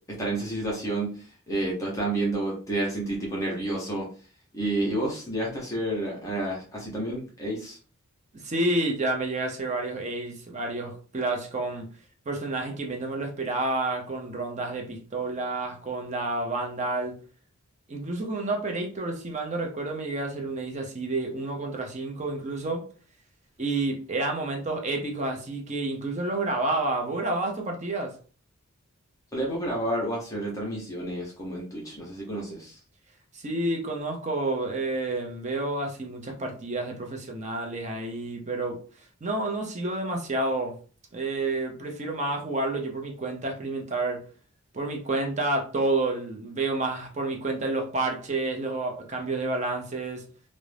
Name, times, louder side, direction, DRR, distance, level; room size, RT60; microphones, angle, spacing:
voice 1, 0.1-4.1 4.5-7.8 29.3-32.8, right 1 dB, 15° left, 0.6 m, -30 dB
voice 2, 8.3-11.9 12.3-17.2 17.9-22.8 23.6-28.2 33.3-38.8 39.2-40.7 41.1-44.2 44.7-50.2, right 2 dB, 30° right, 0.5 m, -29 dB
2.4 x 2.1 x 3.2 m
head